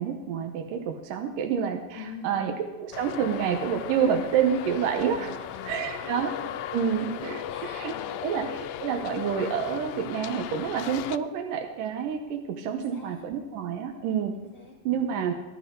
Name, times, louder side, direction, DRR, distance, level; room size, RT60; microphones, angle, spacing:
voice 1, 0.0-2.5 2.8-5.3 5.7-6.3 6.7-7.9 8.2-14.3 14.9-15.3, right 7 dB, 75° right, 4 dB, 2.5 m, -28 dB
voice 2, 1.9-2.6 5.1-6.6 6.9-7.2 7.5-8.4 12.6-13.3 14.3-15.0 15.3-15.4, left 5 dB, 55° left, 0 dB, 1.8 m, -45 dB
Traffic noise roadway noise, 2.9-11.2, left 10 dB, 80° left, 1.8 m, -37 dB
18.0 x 12.0 x 3.8 m, 1.2 s
omnidirectional pair, 4.0 m